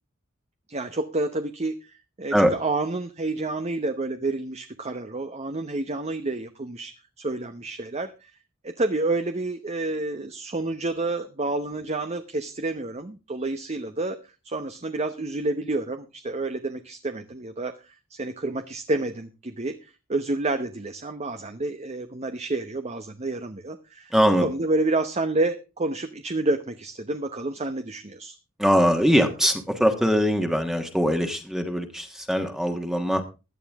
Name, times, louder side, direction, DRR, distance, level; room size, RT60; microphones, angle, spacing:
voice 1, 0.7-1.9 2.2-8.3 8.6-24.1 24.4-28.3, right 2 dB, 35° right, 8 dB, 0.9 m, -29 dB
voice 2, 24.1-24.5 28.6-33.2, equal, 5° right, 5 dB, 1.5 m, -22 dB
16.5 x 11.0 x 3.5 m, 0.30 s
head